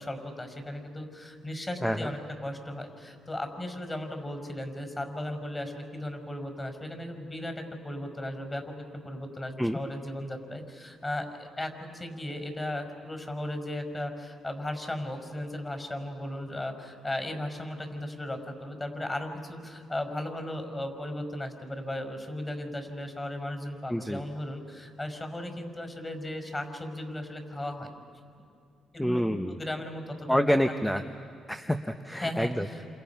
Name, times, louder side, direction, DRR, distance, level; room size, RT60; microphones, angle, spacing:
voice 1, 0.0-8.6 9.0-27.9 28.9-30.4 31.0-31.1 32.2-32.9, left 1 dB, 20° left, 5 dB, 5.2 m, -36 dB
voice 2, 1.8-2.1 9.6-9.8 23.9-24.2 29.0-29.6 30.3-31.0 31.5-32.7, equal, 5° left, 7 dB, 0.9 m, -27 dB
29.0 x 27.5 x 5.9 m, 2.3 s
cardioid pair, 90°, 0 cm